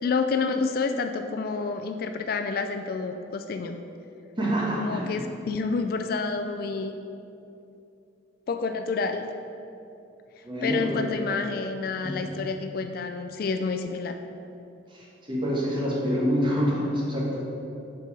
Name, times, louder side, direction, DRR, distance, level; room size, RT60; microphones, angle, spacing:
voice 1, 0.0-3.8 4.8-6.9 8.5-9.3 10.6-14.2, left 4 dB, 50° left, 7 dB, 0.3 m, -29 dB
voice 2, 4.4-5.2 10.4-11.0 12.0-12.3 14.9-17.4, equal, 25° right, -3 dB, 1.2 m, -27 dB
6.7 x 5.3 x 4.7 m, 2.7 s
head